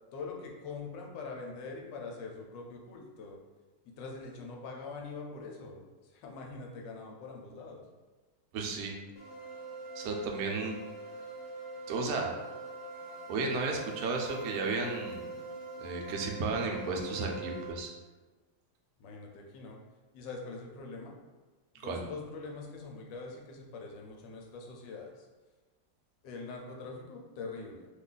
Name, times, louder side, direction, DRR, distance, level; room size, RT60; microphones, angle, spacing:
voice 1, 0.1-3.4 3.8-7.8 19.0-19.8 20.1-21.1 21.7-25.3 26.2-27.9, left 3 dB, 85° left, 1 dB, 1.3 m, -43 dB
voice 2, 8.5-8.9 10.0-10.8 11.9-12.3 13.3-15.2 15.8-17.9 21.8-22.0, right 3 dB, 70° right, 1 dB, 0.9 m, -33 dB
sound 1, 9.2-17.7, right 2 dB, 60° left, 1.1 m, -43 dB
2.9 x 2.4 x 3.7 m, 1.3 s
omnidirectional pair, 1.9 m